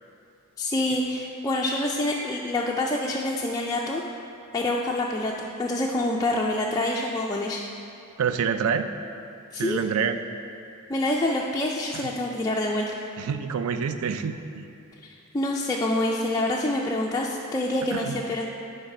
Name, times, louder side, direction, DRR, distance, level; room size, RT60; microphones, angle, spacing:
voice 1, 0.6-4.0 4.5-7.6 9.5-9.8 10.9-13.0 15.0-18.4, left 1 dB, 15° left, -3 dB, 0.3 m, -26 dB
voice 2, 8.2-8.9 9.5-10.2 11.9-12.1 13.2-14.6 17.9-18.2, right 6 dB, 65° right, 9 dB, 0.4 m, -27 dB
9.7 x 3.2 x 5.4 m, 2.5 s
head